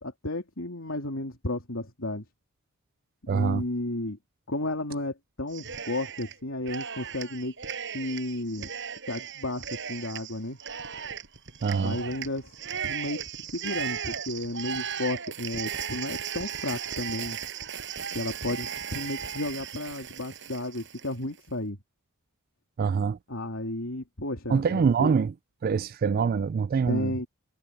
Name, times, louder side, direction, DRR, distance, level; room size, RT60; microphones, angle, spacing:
voice 1, 0.0-2.3 3.2-4.2 4.5-7.5 7.9-8.7 9.1-10.6 11.8-12.5 12.8-17.4 18.1-21.8 23.3-25.1 26.9-27.3, left 1 dB, 65° left, 3.6 m, -33 dB
voice 2, 3.3-3.6 11.6-12.0 22.8-23.2 24.5-25.3 25.6-27.1, right 6 dB, 45° right, 0.3 m, -24 dB
Cheering, 5.5-6.3 6.6-21.1, right 7 dB, 60° right, 6.2 m, -36 dB
head